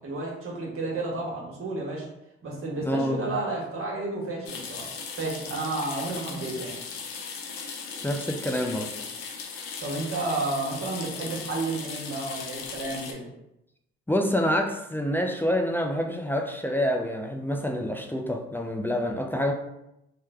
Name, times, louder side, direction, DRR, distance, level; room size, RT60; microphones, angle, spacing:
voice 1, 0.0-2.0 2.4-4.9 5.2-6.8 9.8-13.3, right 2 dB, 45° right, -2 dB, 1.3 m, -31 dB
voice 2, 2.8-3.3 8.0-8.9 14.1-19.5, equal, 5° left, 2 dB, 0.5 m, -27 dB
sound 1, 4.5-13.1, left 5 dB, 80° left, 0.6 m, -38 dB
3.1 x 2.2 x 3.5 m, 0.85 s
hypercardioid pair, 50°, 29 cm